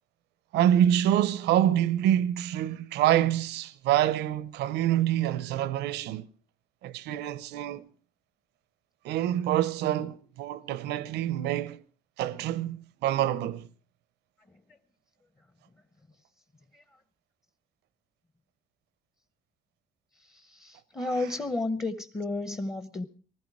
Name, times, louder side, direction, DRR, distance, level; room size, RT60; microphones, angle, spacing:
voice 1, 0.5-6.3 6.8-7.9 9.0-11.8 12.2-13.7, right 11 dB, 85° right, 0.8 m, -26 dB
voice 2, 20.3-23.1, left 2 dB, 20° left, 0.9 m, -32 dB
20.0 x 14.0 x 4.8 m
cardioid pair, 110°, 17 cm